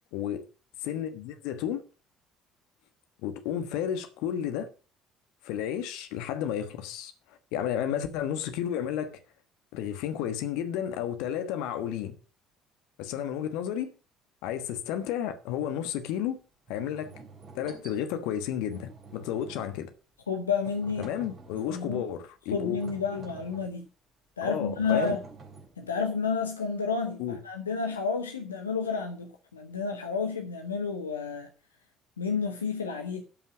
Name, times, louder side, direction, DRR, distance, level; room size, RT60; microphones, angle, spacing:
voice 1, 0.1-0.5 0.8-1.8 3.2-4.7 5.4-7.1 7.5-9.2 9.7-12.1 13.0-13.9 14.4-16.4 16.7-17.1 17.5-19.9 21.0-22.8 24.4-25.2 27.2-27.4, left 10 dB, 65° left, 1.2 m, -32 dB
sound 1, 15.7-15.9 16.7-18.0 18.7-19.9 20.6-21.9 22.6-23.8 24.6-25.9, right 4 dB, 45° right, 3.3 m, -48 dB
voice 2, 20.3-21.1 21.7-22.1 22.5-23.8 24.4-25.2 25.8-31.5 32.2-33.2, left 5 dB, 80° left, 0.9 m, -30 dB
12.5 x 5.7 x 6.0 m
figure-of-eight pair, 50°, 0 cm